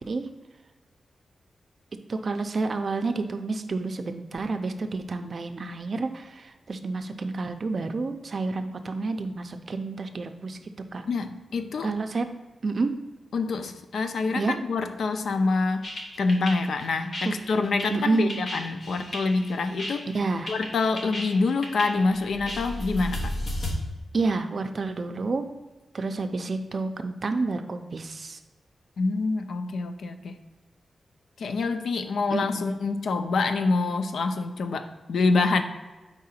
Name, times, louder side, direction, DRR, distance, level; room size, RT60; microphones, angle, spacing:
voice 1, 2.1-10.6 10.9-11.1 11.8-12.3 12.6-13.0 14.4-14.6 17.3-17.4 17.9-18.4 20.1-20.5 24.1-25.5 25.9-28.4 32.3-32.7, right 3 dB, 45° right, 7 dB, 0.5 m, -29 dB
voice 2, 11.1-12.0 13.3-15.9 16.2-20.0 20.5-23.3 29.0-30.3 31.4-35.6, left 3 dB, 85° left, 8 dB, 0.4 m, -26 dB
sound 1, 15.8-23.7, left 1 dB, 50° left, 1.2 m, -34 dB
4.8 x 3.7 x 5.7 m, 1.2 s
wide cardioid pair, 145°, 0 cm